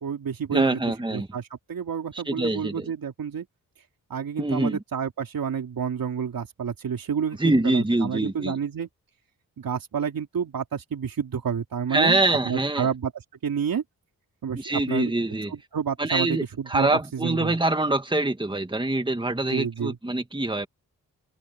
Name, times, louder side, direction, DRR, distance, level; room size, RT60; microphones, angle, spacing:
voice 1, 0.0-3.5 4.1-8.9 9.6-13.1 13.4-13.8 14.4-15.1 15.5-17.6 19.5-20.0, right 7 dB, 80° right, 3.5 m, -29 dB
voice 2, 0.5-1.3 2.3-2.9 4.4-4.8 7.4-8.5 11.9-12.9 14.5-15.5 16.0-20.7, right 2 dB, 15° right, 1.9 m, -24 dB
cardioid pair, 65°, 34 cm